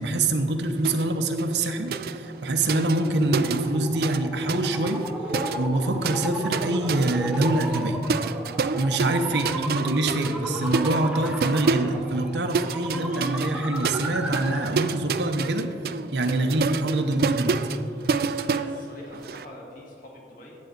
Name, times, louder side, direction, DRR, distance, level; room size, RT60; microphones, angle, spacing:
voice 1, 0.0-5.1 5.6-8.1 8.8-15.7 16.1-17.6, right 2 dB, 80° right, 5 dB, 0.8 m, -25 dB
sound 1, 0.8-1.1 1.4-4.2 4.5-19.4, right 5 dB, 55° right, 0.3 m, -29 dB
sound 2, 2.2-14.9, right 1 dB, 5° right, 0.7 m, -34 dB
voice 2, 9.3-9.6 18.1-20.6, left 1 dB, 50° left, -2 dB, 1.9 m, -46 dB
12.5 x 8.2 x 4.0 m, 2.8 s
head